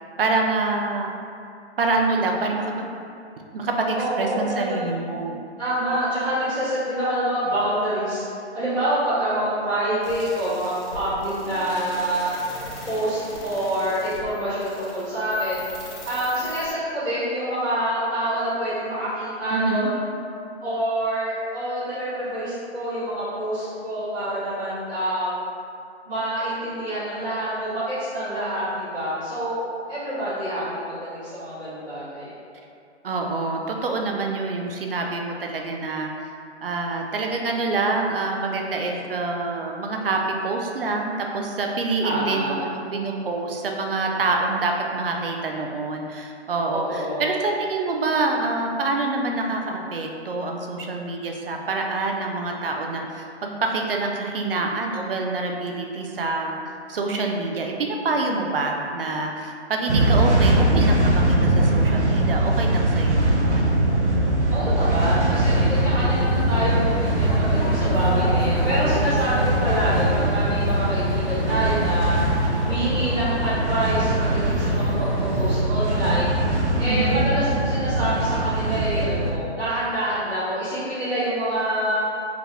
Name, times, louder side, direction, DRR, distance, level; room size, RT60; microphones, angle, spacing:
voice 1, 0.2-1.1 1.8-2.9 3.5-5.4 19.5-19.9 33.0-36.1 36.6-56.6 56.9-63.8 76.9-77.2, right 3 dB, 55° right, 2 dB, 0.6 m, -26 dB
voice 2, 3.9-5.0 5.6-8.2 8.5-12.3 12.8-15.6 16.0-20.1 20.6-25.3 26.0-29.6 29.9-32.3 42.0-42.5 46.9-47.2 64.5-72.2 72.6-76.4 76.8-82.0, right 1 dB, ahead, -25 dB, 0.5 m, -26 dB
sound 1, 10.0-16.7, left 1 dB, 85° left, 1.3 m, -40 dB
sound 2, 59.9-79.3, right 1 dB, 80° right, 1.0 m, -22 dB
sound 3, 65.2-75.6, left 1 dB, 55° left, 1.1 m, -30 dB
4.8 x 2.3 x 3.3 m, 2.5 s
hypercardioid pair, 165°, 34 cm